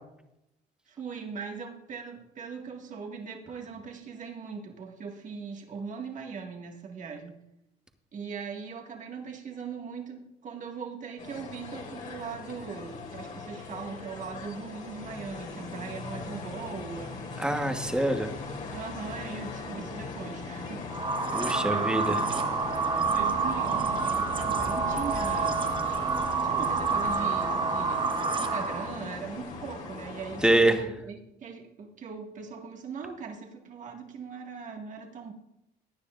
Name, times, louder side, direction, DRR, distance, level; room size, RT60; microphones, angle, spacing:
voice 1, 0.9-7.4 8.1-17.2 18.7-20.8 21.7-22.3 22.9-25.6 26.4-28.2 28.5-35.3, right 5 dB, 50° right, 2 dB, 1.8 m, -40 dB
sound 1, 11.2-30.5, left 3 dB, 50° left, 2.5 m, -39 dB
voice 2, 17.4-18.3 21.3-22.2 30.4-30.8, right 1 dB, 5° right, 5 dB, 1.2 m, -24 dB
sound 2, 20.9-29.0, right 4 dB, 30° right, 1.1 m, -28 dB
17.0 x 9.8 x 2.5 m, 0.84 s
cardioid pair, 110°, 17 cm